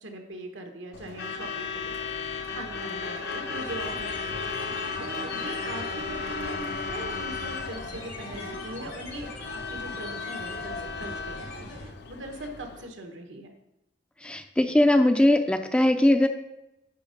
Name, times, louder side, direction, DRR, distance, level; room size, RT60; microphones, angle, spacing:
voice 1, 0.0-13.5, right 1 dB, 85° right, 3 dB, 1.2 m, -41 dB
Truck / Alarm, 0.9-12.9, left 4 dB, 65° left, 0.6 m, -35 dB
sound 1, 3.5-11.9, left 1 dB, 80° left, 3.1 m, -42 dB
voice 2, 14.2-16.3, left 1 dB, 5° left, 7 dB, 0.4 m, -20 dB
9.8 x 3.6 x 5.2 m, 0.92 s
head